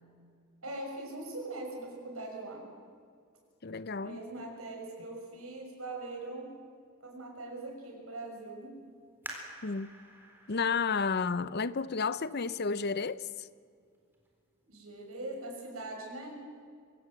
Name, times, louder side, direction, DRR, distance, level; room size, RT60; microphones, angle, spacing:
voice 1, 0.6-2.6 4.0-6.5 7.0-8.8 14.6-16.3, right 2 dB, 85° right, 6.4 m, -41 dB
voice 2, 3.6-4.2 9.6-9.9 10.5-13.5, left 5 dB, 50° left, 0.7 m, -32 dB
sound 1, 9.2-12.6 13.2-13.3 13.9-14.3 14.7-14.8, right 1 dB, 10° right, 4.1 m, -49 dB
24.0 x 17.5 x 7.8 m
head